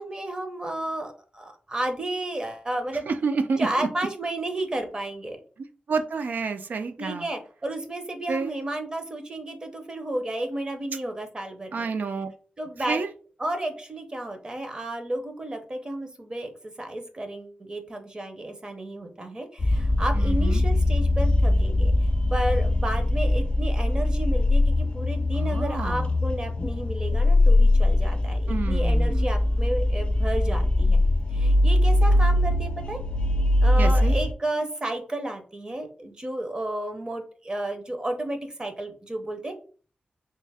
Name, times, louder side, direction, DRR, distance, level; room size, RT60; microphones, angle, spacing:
voice 1, 0.0-3.1 3.6-5.4 7.0-11.9 12.6-13.0 13.4-21.9 22.3-31.0 31.3-33.0 33.6-39.5, right 1 dB, 25° right, 5 dB, 0.6 m, -32 dB
voice 2, 3.1-3.9 5.9-7.3 8.3-8.5 11.7-12.3 12.9-13.1 20.2-20.6 25.4-26.1 28.5-29.3 33.8-34.2, right 4 dB, 65° right, 8 dB, 0.4 m, -29 dB
sound 1, 19.6-34.3, left 1 dB, 35° left, 0.4 m, -21 dB
3.3 x 2.7 x 3.3 m, 0.40 s
wide cardioid pair, 150°, 3 cm